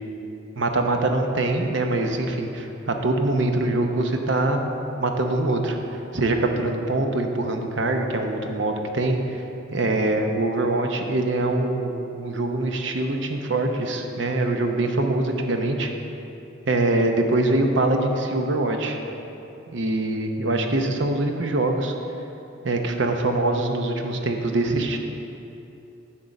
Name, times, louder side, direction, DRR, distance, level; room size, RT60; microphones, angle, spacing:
voice 1, 0.6-4.6 5.0-5.8 6.1-9.4 9.7-15.9 16.7-19.0 19.7-21.9 22.6-25.0, right 2 dB, 65° right, 4 dB, 0.8 m, -23 dB
10.5 x 3.8 x 6.7 m, 2.8 s
head